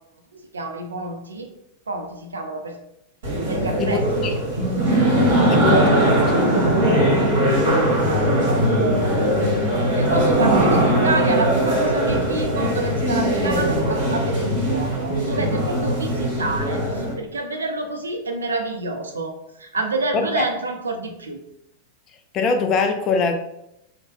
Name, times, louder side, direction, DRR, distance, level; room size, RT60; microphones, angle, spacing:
voice 1, 0.3-1.5 1.9-2.8 3.5-4.4 5.4-5.6 7.4-9.2 9.8-21.4, right 3 dB, 75° right, 4 dB, 0.4 m, -28 dB
sound 1, 3.2-17.1, right 1 dB, 55° right, 1.1 m, -20 dB
voice 2, 3.8-4.3 4.6-4.7 5.5-5.9 6.3-6.5 20.1-20.4 22.3-23.3, left 4 dB, 30° left, 6 dB, 0.4 m, -22 dB
2.6 x 2.0 x 3.7 m, 0.82 s
figure-of-eight pair, 90°, 0 cm